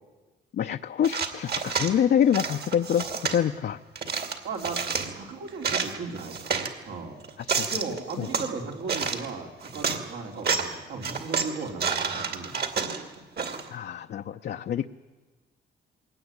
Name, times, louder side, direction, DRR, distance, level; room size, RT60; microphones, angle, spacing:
voice 1, 0.5-3.8 7.6-7.7 8.2-8.3 13.7-14.9, left 9 dB, 55° left, 6 dB, 0.7 m, -26 dB
sound 1, 1.0-1.9 2.3-3.4 3.9-5.1 5.5-6.7 7.2-8.5 8.9-9.3 9.6-10.0 10.4-10.7 11.0-13.7, right 5 dB, 55° right, 2.5 m, -29 dB
voice 2, 4.4-7.2 7.7-12.7, right 4 dB, 80° right, 1 dB, 4.0 m, -36 dB
21.5 x 17.5 x 9.5 m, 1.3 s
cardioid pair, 90°, 20 cm